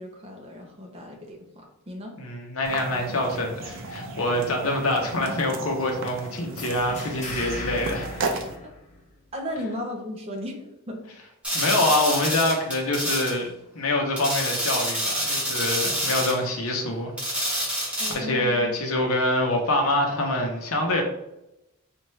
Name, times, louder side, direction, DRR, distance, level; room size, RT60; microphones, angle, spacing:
voice 1, 0.0-2.1 8.6-8.7 9.3-11.0 18.0-18.7, left 1 dB, 30° right, 1 dB, 0.7 m, -35 dB
voice 2, 2.2-8.4 11.5-13.5 13.7-17.6 18.1-21.0, left 1 dB, 80° left, 2 dB, 0.9 m, -25 dB
sound 1, 2.6-8.6, right 3 dB, 60° right, 0.5 m, -35 dB
sound 2, 6.6-9.3, left 1 dB, 35° left, 0.8 m, -37 dB
sound 3, 11.4-13.3 14.2-16.4 17.2-18.1, equal, 5° right, 1.3 m, -27 dB
4.3 x 2.5 x 3.2 m, 0.87 s
head